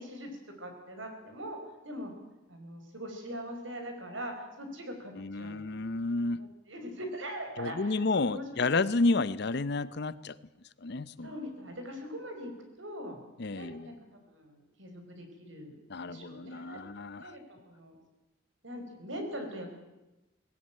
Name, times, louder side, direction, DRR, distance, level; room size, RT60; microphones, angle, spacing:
voice 1, 0.0-2.1 2.5-5.8 6.4-8.8 11.2-13.2 13.5-16.8 17.2-18.0 18.6-19.8, equal, 75° right, 5 dB, 4.9 m, -42 dB
voice 2, 5.2-6.5 7.6-10.4 10.8-11.3 13.4-13.9 15.9-17.4, left 3 dB, 55° left, 17 dB, 0.7 m, -31 dB
19.5 x 16.5 x 9.0 m, 1.0 s
head